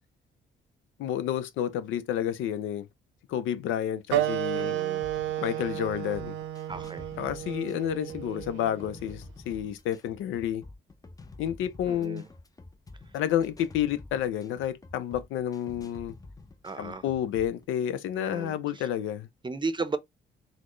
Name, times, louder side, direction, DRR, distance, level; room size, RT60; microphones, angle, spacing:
voice 1, 1.0-2.9 3.3-4.8 5.4-6.4 7.2-10.6 11.4-12.2 13.1-16.1 16.8-19.3, left 10 dB, 85° left, 0.5 m, -30 dB
Wind instrument woodwind instrument, 4.1-9.2, right 12 dB, 75° right, 0.5 m, -32 dB
voice 2, 4.5-5.0 6.7-7.1 11.8-12.3 16.6-17.0 18.1-18.9 19.4-20.0, right 3 dB, 25° right, 0.6 m, -35 dB
sound 1, 5.0-17.7, left 2 dB, 20° left, 0.5 m, -49 dB
4.1 x 2.1 x 3.1 m
cardioid pair, 90°, 20 cm